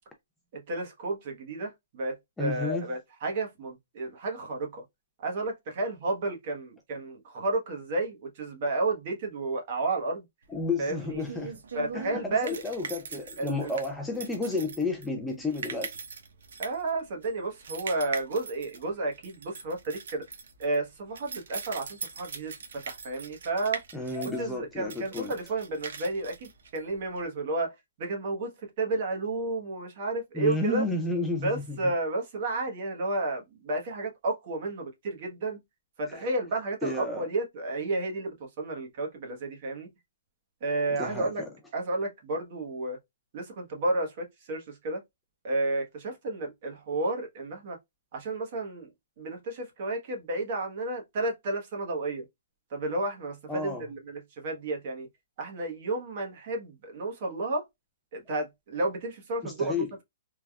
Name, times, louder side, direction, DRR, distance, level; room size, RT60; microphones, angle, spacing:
voice 1, 0.5-4.8 5.2-10.2 10.8-11.2 11.7-12.6 13.4-13.7 16.6-20.2 20.6-22.5 22.9-23.8 24.4-30.8 31.4-35.6 36.0-39.9 40.6-41.4 41.7-43.0 43.3-45.0 45.4-47.8 48.1-48.9 49.2-52.2 52.7-55.1 55.4-57.6 58.1-59.7, right 2 dB, 35° right, 1.0 m, -32 dB
voice 2, 2.4-2.9 10.5-11.6 11.9-16.0 23.9-25.3 30.3-31.8 36.1-36.3 36.8-37.3 41.0-41.5 53.5-53.8 59.4-59.9, left 3 dB, 5° left, 0.4 m, -32 dB
sound 1, 10.5-27.2, right 5 dB, 70° right, 0.7 m, -41 dB
3.3 x 2.3 x 2.2 m
hypercardioid pair, 170°, 0 cm